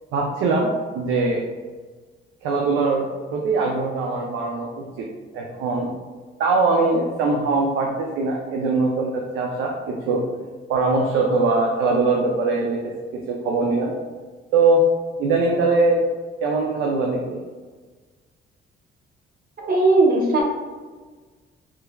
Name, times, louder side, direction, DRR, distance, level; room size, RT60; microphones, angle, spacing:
voice 1, 0.1-1.4 2.4-5.1 5.3-5.9 6.4-10.2 10.7-12.8 13.3-13.9 14.5-14.8 15.2-16.0 16.4-17.4, right 3 dB, 90° right, -1 dB, 0.5 m, -21 dB
voice 2, 19.6-20.6, right 2 dB, 50° right, -1 dB, 0.9 m, -18 dB
3.3 x 3.2 x 2.2 m, 1.4 s
cardioid pair, 90°, 20 cm